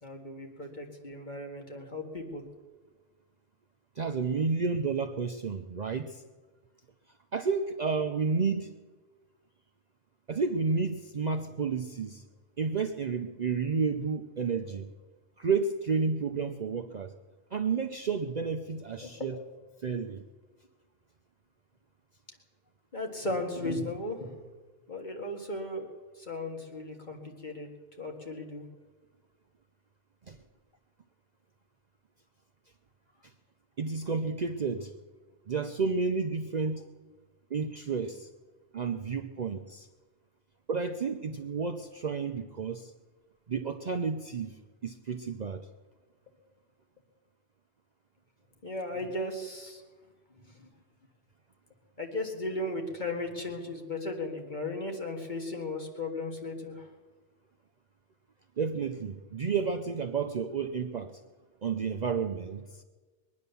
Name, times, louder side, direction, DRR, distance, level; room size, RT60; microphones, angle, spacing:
voice 1, 0.0-2.4 14.7-14.8 19.0-19.4 22.9-24.3 24.9-25.9 26.2-27.7 28.0-28.6 48.6-49.8 50.3-50.7 52.0-56.9, left 2 dB, 40° left, 2 dB, 2.0 m, -36 dB
voice 2, 4.0-6.2 7.3-8.8 10.3-12.2 12.6-14.9 15.4-17.1 17.5-19.4 19.8-20.2 30.3-30.4 33.8-34.9 35.5-36.8 37.5-38.3 38.7-39.9 40.7-42.9 43.5-45.7 58.6-61.2 61.6-62.8, right 5 dB, 45° right, 5 dB, 0.6 m, -31 dB
21.5 x 9.5 x 6.9 m, 1.3 s
omnidirectional pair, 1.2 m